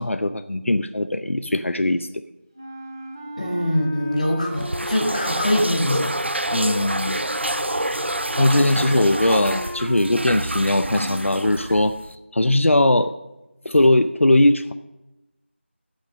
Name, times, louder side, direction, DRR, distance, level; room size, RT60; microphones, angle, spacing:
voice 1, 0.0-2.1 6.5-7.2 8.4-12.0 12.3-13.1 13.6-14.7, left 1 dB, 85° left, 9 dB, 0.7 m, -19 dB
sound 1, 2.5-11.2, equal, 20° right, 0.8 m, -35 dB
voice 2, 3.4-6.1, left 1 dB, 35° left, 2 dB, 1.6 m, -23 dB
sound 2, 4.5-12.1, right 1 dB, 60° right, 0.7 m, -27 dB
14.0 x 6.5 x 6.5 m, 0.97 s
figure-of-eight pair, 180°, 7 cm